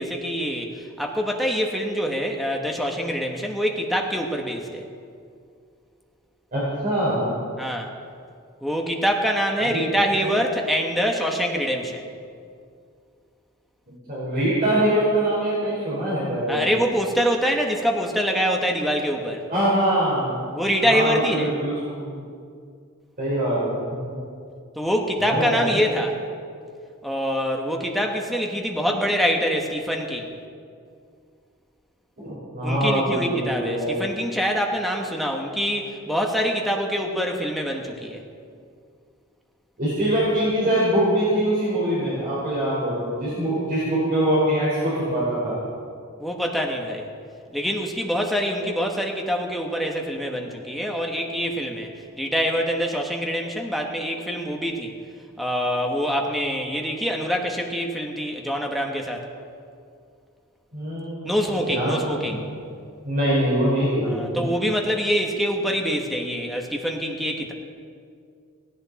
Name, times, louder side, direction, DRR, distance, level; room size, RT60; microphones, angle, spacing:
voice 1, 0.0-4.8 7.6-7.9 8.6-12.1 16.5-19.4 20.5-21.5 24.7-26.2 27.0-30.3 32.6-38.2 46.2-47.1 47.5-51.9 52.2-54.9 55.4-59.3 61.2-62.4 64.0-67.5, equal, ahead, 1 dB, 1.3 m, -25 dB
voice 2, 6.5-7.3 9.6-10.3 14.1-16.6 19.5-20.6 20.8-22.2 23.2-23.8 24.1-24.2 25.2-25.8 32.2-33.9 39.8-45.6 60.7-62.4 63.0-64.4, right 1 dB, 40° right, -8 dB, 4.6 m, -23 dB
17.5 x 16.5 x 4.2 m, 2.3 s
head